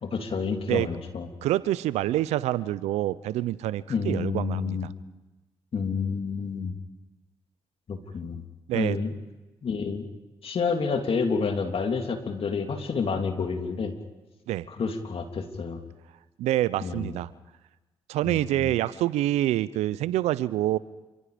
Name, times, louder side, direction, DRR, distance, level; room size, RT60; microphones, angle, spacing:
voice 1, 0.0-1.3 3.9-4.9 5.7-6.7 7.9-8.4 8.7-9.1 9.6-10.0 10.4-13.9 14.7-15.8 16.8-17.1 18.2-18.7, left 5 dB, 60° left, 4 dB, 3.3 m, -29 dB
voice 2, 1.4-4.9 8.7-9.0 14.5-14.7 16.4-17.3 18.1-20.8, right 14 dB, 80° right, 18 dB, 0.7 m, -26 dB
29.0 x 26.5 x 5.2 m, 1.1 s
hypercardioid pair, 40°, 11 cm